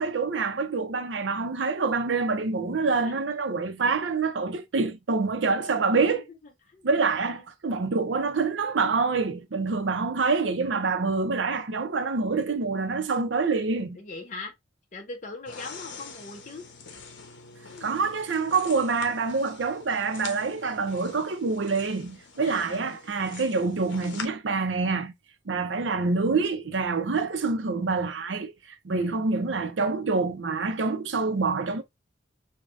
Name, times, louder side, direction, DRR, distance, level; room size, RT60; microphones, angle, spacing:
voice 1, 0.0-6.2 6.8-14.0 17.8-25.1 25.5-31.8, right 4 dB, 80° right, 0.6 m, -26 dB
voice 2, 5.7-6.2 6.7-6.9 7.2-7.4 13.9-14.5 14.9-16.7 17.7-17.9 22.4-23.0 28.9-29.1, left 3 dB, 45° left, 0.7 m, -42 dB
sound 1, 15.5-24.3, left 5 dB, 80° left, 0.8 m, -44 dB
4.7 x 2.2 x 2.5 m
head